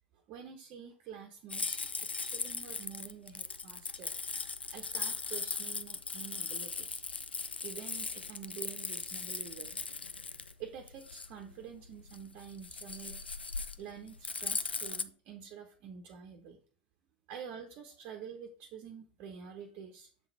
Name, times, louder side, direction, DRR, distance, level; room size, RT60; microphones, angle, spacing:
voice 1, 0.3-4.1 4.7-7.0 7.6-9.8 10.6-13.2 13.8-16.6 17.3-20.1, right 7 dB, 40° right, 3 dB, 1.0 m, -48 dB
sound 1, 1.5-15.0, left 4 dB, 80° left, 0.5 m, -39 dB
7.6 x 3.9 x 4.5 m, 0.42 s
figure-of-eight pair, 85°, 6 cm